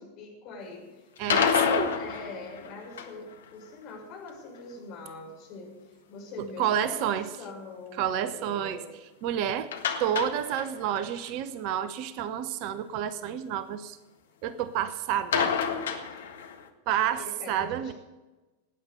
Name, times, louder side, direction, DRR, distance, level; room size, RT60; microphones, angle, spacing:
voice 1, 0.0-8.9 17.1-17.9, left 3 dB, 40° left, -1 dB, 6.7 m, -43 dB
sound 1, 1.2-3.3 9.7-11.0 11.3-11.4 11.7-11.8 15.3-16.7, left 7 dB, 60° left, 1.6 m, -28 dB
voice 2, 1.2-1.9 6.6-7.3 8.0-8.8 9.2-9.7 10.0-14.0 14.4-15.5 16.9-17.9, right 10 dB, 45° right, 14 dB, 0.8 m, -29 dB
18.0 x 9.8 x 6.8 m, 1.1 s
figure-of-eight pair, 90°, 0 cm